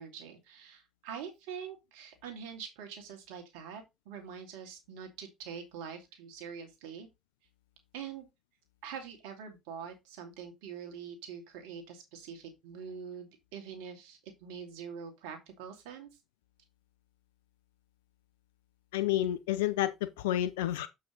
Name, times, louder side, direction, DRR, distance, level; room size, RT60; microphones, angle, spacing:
voice 1, 0.0-7.1 7.9-8.3 8.8-16.1, right 7 dB, 75° right, 2.5 m, -44 dB
voice 2, 18.9-20.9, left 13 dB, 80° left, 0.6 m, -30 dB
7.6 x 6.2 x 3.9 m
hypercardioid pair, 55°, 0 cm